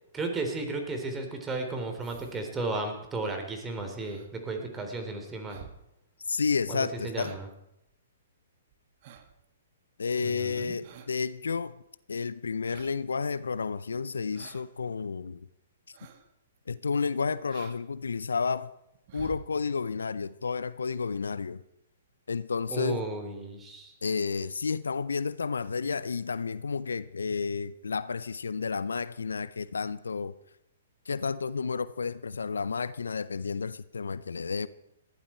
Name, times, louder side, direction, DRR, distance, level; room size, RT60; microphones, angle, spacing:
voice 1, 0.1-5.6 6.7-7.5 10.2-10.8 22.7-23.9, right 3 dB, 15° right, 4 dB, 3.6 m, -34 dB
sound 1, 2.0-2.7 4.0-4.3 4.8-4.9 5.5-5.8 6.2-6.3 6.7-6.8 7.2-7.5 7.9-8.0 8.7-9.4 10.8-11.2 12.6-13.1 14.3-14.6 15.0-15.1 15.9-16.3 16.6-16.7 17.5-17.8 18.1-18.6 18.9-19.5 20.5-20.6 20.8-20.9, right 9 dB, 45° right, 1.6 m, -49 dB
voice 2, 6.3-7.3 10.0-11.7 12.1-15.5 16.7-18.7 19.1-21.6 22.3-23.0 24.0-30.3 31.1-34.7, left 5 dB, 75° left, 17 dB, 0.6 m, -31 dB
19.5 x 15.0 x 4.5 m, 0.81 s
figure-of-eight pair, 120°, 0 cm